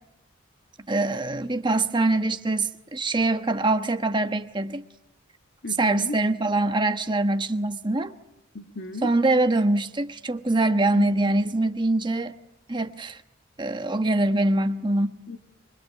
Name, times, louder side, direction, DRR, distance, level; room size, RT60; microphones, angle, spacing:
voice 1, 0.9-4.8 5.8-8.1 9.0-12.3 12.7-13.2 13.6-15.2, right 2 dB, 25° right, 1.2 m, -24 dB
voice 2, 5.6-6.2 8.5-9.1 10.9-11.3 15.3-15.4, left 2 dB, 60° left, 1.5 m, -35 dB
25.0 x 24.0 x 9.4 m
head